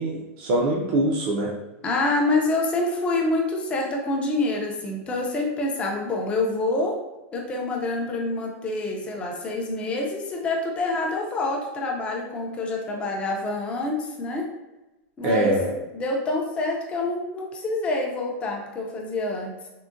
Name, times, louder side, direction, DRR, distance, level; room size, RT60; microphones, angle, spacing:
voice 1, 0.0-1.5 15.2-15.7, right 1 dB, 45° right, -3 dB, 0.5 m, -23 dB
voice 2, 1.8-7.0 7.3-14.5 15.2-15.5 15.9-19.5, left 2 dB, 15° left, -1 dB, 0.5 m, -26 dB
3.6 x 2.1 x 2.5 m, 1.0 s
supercardioid pair, 160°, 7 cm